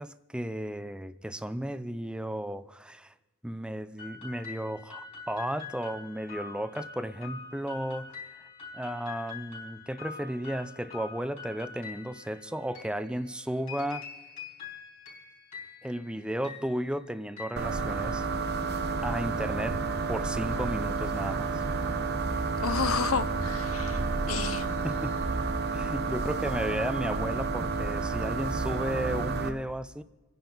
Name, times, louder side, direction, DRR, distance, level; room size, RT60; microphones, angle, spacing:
voice 1, 0.0-3.1 3.4-8.2 8.7-14.1 15.8-18.3 19.0-21.6 24.8-25.2 25.7-30.0, right 1 dB, 5° right, 0.5 m, -34 dB
sound 1, 4.0-18.4, left 5 dB, 35° left, 3.9 m, -45 dB
sound 2, 17.6-29.5, right 4 dB, 50° right, 1.0 m, -30 dB
voice 2, 22.6-24.0 24.3-24.8, left 6 dB, 80° left, 0.8 m, -31 dB
28.0 x 10.5 x 4.0 m
head